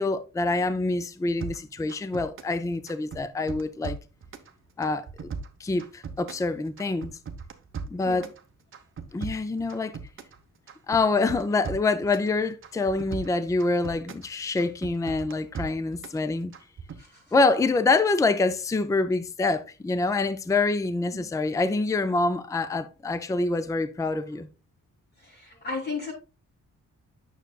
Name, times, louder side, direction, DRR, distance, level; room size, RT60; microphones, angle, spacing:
voice 1, 0.0-4.0 4.8-5.3 5.6-7.1 7.9-8.4 9.1-10.0 10.9-16.5 17.3-24.5, left 3 dB, 10° left, 0.4 m, -26 dB
sound 1, 1.4-2.6 2.9-4.5 4.8-6.5 6.8-8.4 8.7-10.4 10.7-12.3 12.6-14.3 14.6-16.2 16.5-17.0, right 5 dB, 40° right, 0.9 m, -38 dB
voice 2, 17.0-17.3 21.1-21.3 25.2-26.1, left 4 dB, 30° left, 3.2 m, -35 dB
9.0 x 6.3 x 2.4 m
wide cardioid pair, 170°, 31 cm